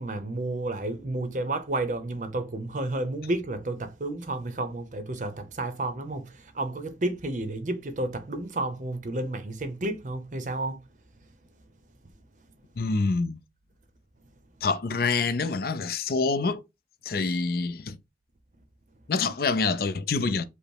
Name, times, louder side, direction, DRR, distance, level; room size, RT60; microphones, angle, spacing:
voice 1, 0.0-10.8, right 2 dB, 45° right, 0.7 m, -31 dB
voice 2, 12.8-13.4 14.6-16.6 17.1-18.0 19.1-20.4, left 4 dB, 55° left, 0.5 m, -26 dB
5.2 x 2.0 x 4.7 m
head